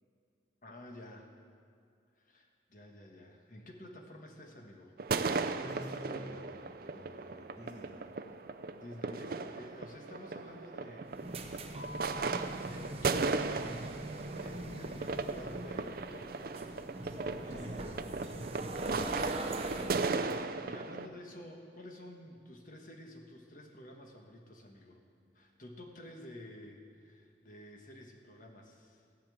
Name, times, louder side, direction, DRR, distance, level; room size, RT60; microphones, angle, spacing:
voice 1, 0.6-1.3 2.1-4.9 8.8-11.8 12.6-16.7 18.3-25.0 25.3-29.0, left 1 dB, 45° left, 2 dB, 1.5 m, -51 dB
sound 1, 5.0-21.1, right 4 dB, 55° right, 0.5 m, -37 dB
voice 2, 5.6-8.0 17.4-18.5, equal, 15° left, -8 dB, 3.0 m, -48 dB
sound 2, 11.1-20.4, right 1 dB, 35° right, 0.9 m, -41 dB
15.5 x 5.7 x 8.6 m, 2.3 s
head